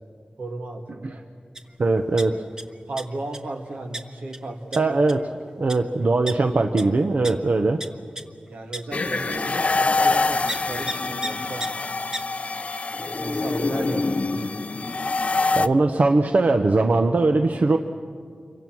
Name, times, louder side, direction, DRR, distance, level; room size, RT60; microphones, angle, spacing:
voice 1, 0.4-1.2 2.9-5.0 8.5-11.7 12.9-14.5 15.5-15.7, right 2 dB, 90° right, 2 dB, 2.4 m, -35 dB
sound 1, 1.5-1.7 2.0-2.6 3.0-3.4 3.9-4.0 4.3-4.4 4.7-4.8 5.1-5.3 5.7-5.8 6.3-6.4 6.8-6.9 7.2-7.3 7.8-7.9 8.2-8.3 8.7-8.8 9.3-9.4 10.5-10.6 10.9-11.0 11.2-11.3 11.6-11.7 12.1-12.2, right 1 dB, 25° right, 1.2 m, -31 dB
voice 2, 1.8-2.4 4.8-5.2 5.6-7.8 15.5-17.8, right 3 dB, 65° right, 6 dB, 0.9 m, -20 dB
sound 2, 8.9-15.7, left 3 dB, 50° left, 0.6 m, -25 dB
27.0 x 23.5 x 6.2 m, 2.2 s
wide cardioid pair, 75°, 3 cm